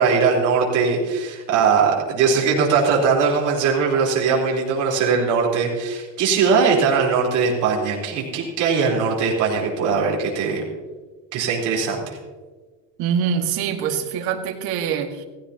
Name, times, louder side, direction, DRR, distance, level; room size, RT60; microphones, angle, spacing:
voice 1, 0.0-10.6 11.3-12.2, right 5 dB, 45° right, -3 dB, 4.1 m, -20 dB
voice 2, 13.0-15.2, right 7 dB, 65° right, 4 dB, 1.9 m, -24 dB
16.0 x 16.0 x 2.9 m, 1.4 s
cardioid pair, 140°, 41 cm